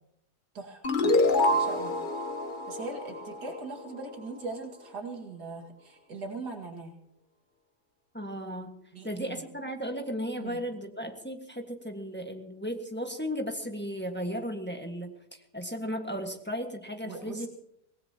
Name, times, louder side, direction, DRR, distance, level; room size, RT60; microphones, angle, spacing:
voice 1, 0.5-1.1 1.5-1.9 2.7-6.9 8.9-9.5 10.4-10.6 17.0-17.5, right 3 dB, 75° right, 1 dB, 2.6 m, -40 dB
sound 1, 0.8-4.1, left 1 dB, 35° left, 1.1 m, -27 dB
voice 2, 8.1-8.8 9.0-17.5, equal, 5° left, 3 dB, 1.5 m, -35 dB
24.5 x 18.5 x 2.9 m, 0.74 s
omnidirectional pair, 1.7 m